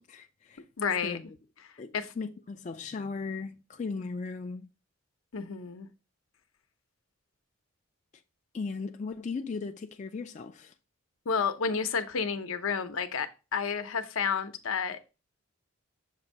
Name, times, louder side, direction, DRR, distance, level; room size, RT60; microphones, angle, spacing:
voice 1, 0.0-0.6 1.0-1.4 1.8-4.7 8.5-10.7, left 4 dB, 35° left, 0.3 m, -37 dB
voice 2, 0.8-1.2 1.9-2.1 5.3-5.9 11.3-15.0, left 6 dB, 75° left, 0.7 m, -30 dB
6.8 x 2.6 x 5.2 m
head